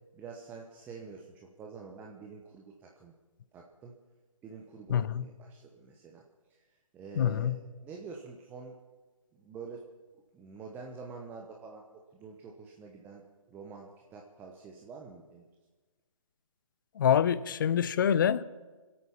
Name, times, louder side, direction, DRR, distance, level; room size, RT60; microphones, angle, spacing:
voice 1, 0.1-3.1 3.5-3.9 4.4-6.2 6.5-6.6 6.9-8.8 9.3-9.8 10.3-15.5, right 5 dB, 10° right, 0.8 m, -47 dB
voice 2, 4.9-5.2 7.2-7.5 17.0-18.4, left 9 dB, 35° left, 0.6 m, -26 dB
25.0 x 8.6 x 5.7 m
figure-of-eight pair, 145°, 18 cm